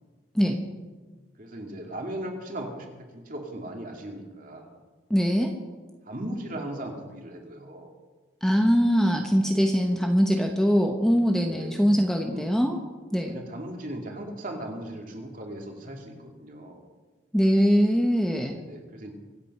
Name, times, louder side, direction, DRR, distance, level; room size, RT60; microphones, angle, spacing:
voice 1, 1.4-2.9 3.1-4.8 6.1-7.9 11.4-11.7 12.2-12.5 13.3-16.8 18.5-19.1, right 1 dB, 45° right, 1 dB, 2.7 m, -37 dB
voice 2, 5.1-5.5 8.4-12.8 13.1-13.4 17.3-18.6, equal, 5° left, 2 dB, 1.1 m, -22 dB
25.0 x 9.0 x 5.6 m, 1.3 s
head